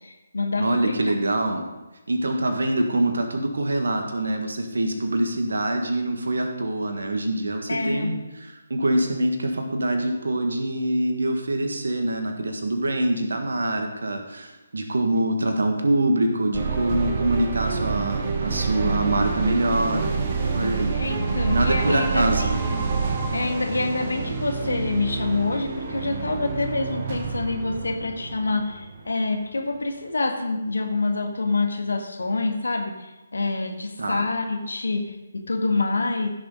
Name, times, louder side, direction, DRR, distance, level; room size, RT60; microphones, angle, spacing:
voice 1, 0.0-1.1 7.7-8.1 20.9-22.6 23.3-36.3, left 3 dB, 65° left, 4 dB, 1.6 m, -26 dB
voice 2, 0.6-1.6 2.1-8.2 8.7-20.1 20.5-21.0 21.5-22.5 34.0-34.2, right 1 dB, 60° right, 4 dB, 1.7 m, -24 dB
sound 1, 16.5-29.3, right 5 dB, 35° right, 1.3 m, -27 dB
15.5 x 6.7 x 3.9 m, 1.1 s
figure-of-eight pair, 145°, 0 cm